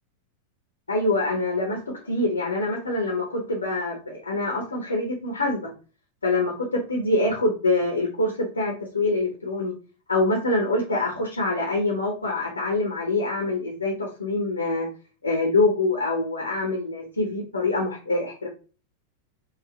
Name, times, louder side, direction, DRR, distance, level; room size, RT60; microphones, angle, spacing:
voice 1, 0.9-5.7 6.2-9.7 10.1-14.9 15.2-18.5, left 2 dB, 75° left, 0 dB, 0.9 m, -25 dB
4.1 x 2.4 x 2.9 m, 0.36 s
figure-of-eight pair, 90°, 0 cm